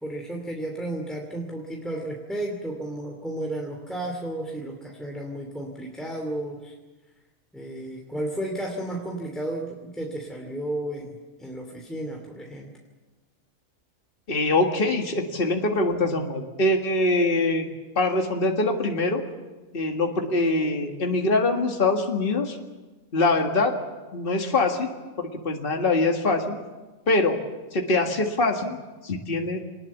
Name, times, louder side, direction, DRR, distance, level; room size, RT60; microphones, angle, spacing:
voice 1, 0.0-6.7 7.5-12.7, right 1 dB, ahead, 0 dB, 2.6 m, -33 dB
voice 2, 14.3-17.7 18.0-19.2 19.7-22.6 23.1-23.7 24.1-24.9 25.2-26.6 27.1-27.4 27.7-28.8 29.0-29.6, left 2 dB, 40° left, 2 dB, 2.0 m, -23 dB
24.5 x 20.0 x 7.3 m, 1.2 s
omnidirectional pair, 1.5 m